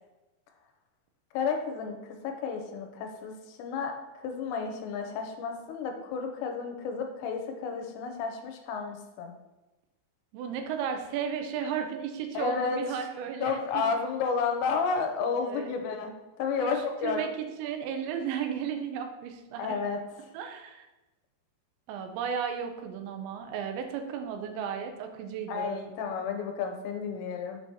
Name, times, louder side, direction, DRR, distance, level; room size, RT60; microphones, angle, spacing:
voice 1, 1.3-9.3 12.3-12.8 13.4-17.2 19.6-20.0 25.5-27.6, left 5 dB, 85° left, 4 dB, 2.8 m, -32 dB
voice 2, 10.3-13.8 15.3-15.8 16.6-19.8 20.3-20.9 21.9-25.8, right 7 dB, 90° right, 5 dB, 2.9 m, -34 dB
7.1 x 4.5 x 2.9 m, 1.0 s
omnidirectional pair, 5.1 m